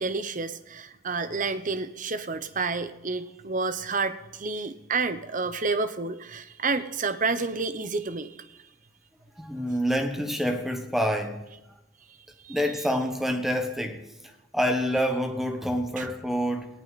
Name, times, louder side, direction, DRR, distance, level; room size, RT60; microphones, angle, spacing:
voice 1, 0.0-8.6 12.4-12.6 16.0-16.1, right 4 dB, 40° right, 0.9 m, -30 dB
voice 2, 9.4-11.5 12.5-14.0 14.5-16.7, equal, ahead, 1.2 m, -27 dB
18.5 x 18.0 x 4.1 m
head